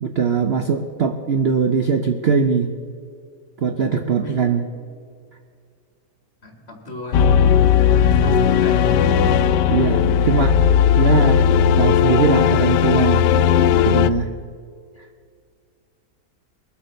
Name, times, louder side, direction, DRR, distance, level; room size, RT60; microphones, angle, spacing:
voice 1, 0.0-2.7 3.6-4.6 8.3-8.4 9.7-10.5 11.0-11.5 11.8-13.3 13.9-14.3, right 5 dB, 55° right, 6 dB, 0.8 m, -20 dB
voice 2, 6.4-7.2 8.0-9.1, left 2 dB, 40° left, 3 dB, 2.3 m, -35 dB
sound 1, 7.1-14.1, left 8 dB, 85° left, 1.2 m, -16 dB
21.5 x 8.0 x 6.5 m, 2.2 s
omnidirectional pair, 1.8 m